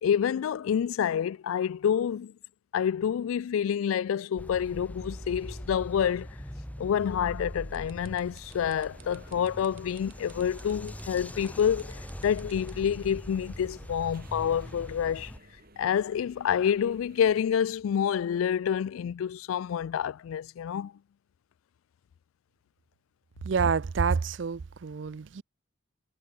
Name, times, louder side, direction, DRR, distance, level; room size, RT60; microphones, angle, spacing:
voice 1, 0.0-2.3 2.7-6.3 6.8-15.3 15.8-20.9, left 8 dB, 80° left, 0.3 m, -28 dB
sound 1, 4.4-15.4, equal, 5° left, 1.6 m, -42 dB
sound 2, 7.7-12.9, right 13 dB, 80° right, 2.0 m, -55 dB
sound 3, 8.5-17.4, right 1 dB, 45° right, 7.7 m, -55 dB
voice 2, 23.4-25.4, right 5 dB, 60° right, 0.5 m, -28 dB
head